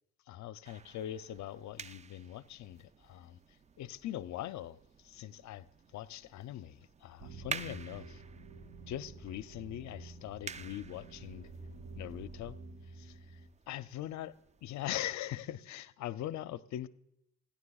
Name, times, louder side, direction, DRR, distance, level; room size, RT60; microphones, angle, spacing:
voice 1, 0.3-3.4 3.8-5.7 5.9-8.2 8.9-11.5 12.0-12.6 12.9-13.4 13.7-14.3 14.6-16.9, left 12 dB, 70° left, 0.5 m, -42 dB
sound 1, 0.6-14.9, right 6 dB, 25° right, 0.4 m, -50 dB
sound 2, 7.2-13.5, right 3 dB, 80° right, 2.7 m, -50 dB
15.5 x 10.0 x 2.3 m
cardioid pair, 90°, 30 cm